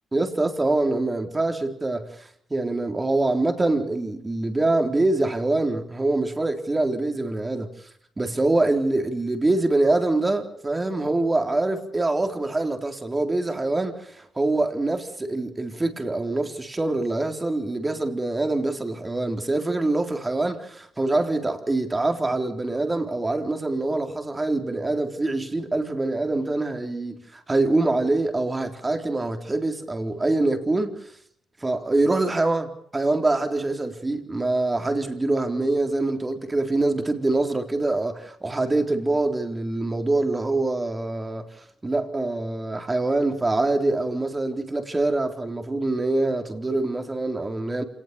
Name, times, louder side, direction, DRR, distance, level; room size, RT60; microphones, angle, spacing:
voice 1, 0.1-7.7 8.2-31.1 31.6-41.5 41.8-47.8, right 2 dB, 20° right, 3.9 m, -24 dB
27.0 x 19.0 x 6.9 m
cardioid pair, 90°, 0 cm